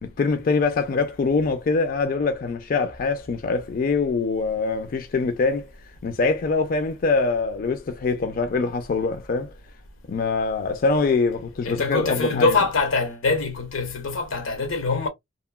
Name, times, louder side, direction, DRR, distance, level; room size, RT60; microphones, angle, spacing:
voice 1, 0.0-5.7 6.0-9.5 10.1-12.6, left 4 dB, 45° left, 0.3 m, -24 dB
voice 2, 11.6-15.1, left 3 dB, 85° left, 0.8 m, -24 dB
2.8 x 2.6 x 2.2 m
head